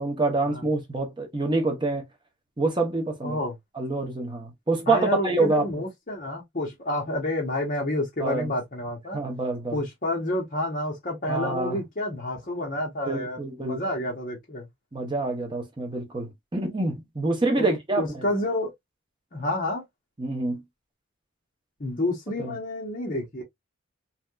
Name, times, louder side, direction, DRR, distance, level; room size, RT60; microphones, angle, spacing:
voice 1, 0.0-2.1 2.6-3.4 3.8-5.7 8.2-8.5 9.1-9.8 11.3-11.8 13.1-13.8 14.9-18.2 20.2-20.6 22.4-22.5, right 3 dB, 20° right, 0.7 m, -26 dB
voice 2, 3.2-3.5 4.9-9.2 9.7-14.7 17.6-17.7 18.0-18.7 19.3-19.8 21.8-23.4, left 1 dB, 40° left, 0.9 m, -29 dB
3.3 x 2.7 x 2.3 m
head